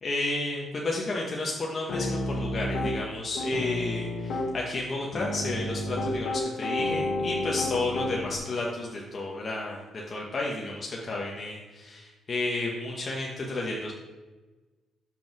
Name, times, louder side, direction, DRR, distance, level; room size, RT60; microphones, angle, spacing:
voice 1, 0.0-13.9, left 2 dB, 40° left, -2 dB, 1.3 m, -32 dB
Piano, 1.9-2.9 3.4-4.5 5.1-8.4, left 2 dB, 65° left, 1.3 m, -30 dB
5.5 x 5.2 x 6.1 m, 1.2 s
cardioid pair, 90°, 0 cm